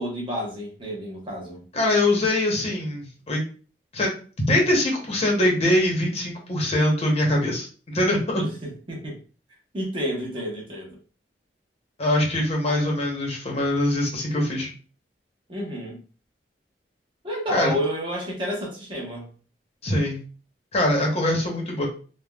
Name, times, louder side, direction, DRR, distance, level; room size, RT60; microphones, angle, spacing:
voice 1, 0.0-1.6 8.4-9.2 9.7-11.0 12.8-12.9 15.5-16.0 17.2-19.3, equal, 30° right, -2 dB, 1.0 m, -30 dB
voice 2, 1.7-3.4 3.9-4.1 4.5-8.4 12.0-14.7 17.5-17.7 19.8-20.2 20.7-21.9, left 1 dB, 35° left, -1 dB, 0.9 m, -23 dB
3.4 x 2.2 x 2.3 m, 0.38 s
head